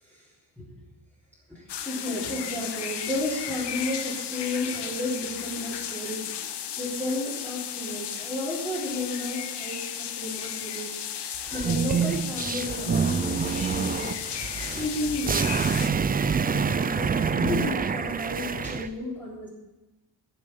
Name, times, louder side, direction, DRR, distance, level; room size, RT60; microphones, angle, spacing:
voice 1, 1.5-6.3 6.8-11.0 11.5-14.2 14.7-15.5 16.4-19.5, left 1 dB, 5° left, -8 dB, 3.5 m, -32 dB
sound 1, 1.7-15.9, left 9 dB, 90° left, 1.2 m, -34 dB
sound 2, 11.5-18.9, right 6 dB, 25° right, 0.4 m, -27 dB
15.5 x 7.0 x 7.8 m, 1.1 s
wide cardioid pair, 170°, 40 cm